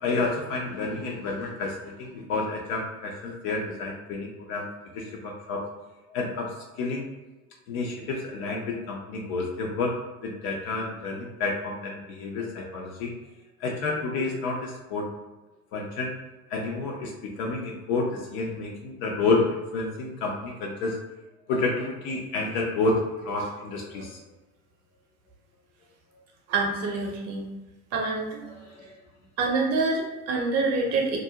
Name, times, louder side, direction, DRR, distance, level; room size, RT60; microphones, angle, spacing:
voice 1, 0.0-4.7 4.9-5.6 6.1-7.1 7.7-9.9 10.2-13.1 13.6-15.0 15.7-16.1 16.5-19.4 19.7-21.0 21.5-23.0 23.2-24.2 28.4-29.0, left 3 dB, 35° left, -1 dB, 0.4 m, -29 dB
voice 2, 26.5-27.4 27.9-28.4 29.4-31.2, right 3 dB, 35° right, 0 dB, 0.7 m, -26 dB
2.3 x 2.0 x 2.7 m, 1.1 s
figure-of-eight pair, 85°, 44 cm